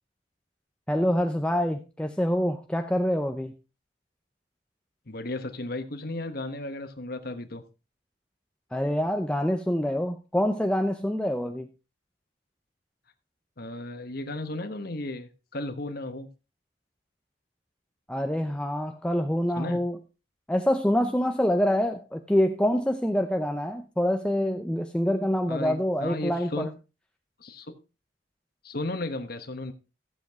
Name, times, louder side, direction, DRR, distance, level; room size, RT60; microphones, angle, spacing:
voice 1, 0.9-3.5 8.7-11.7 18.1-20.0 20.5-26.7, equal, 5° left, 0.5 m, -26 dB
voice 2, 5.1-7.6 13.6-16.3 19.5-19.8 25.5-26.7 27.4-27.7 28.6-29.7, left 2 dB, 50° left, 1.2 m, -34 dB
14.5 x 7.6 x 3.6 m
head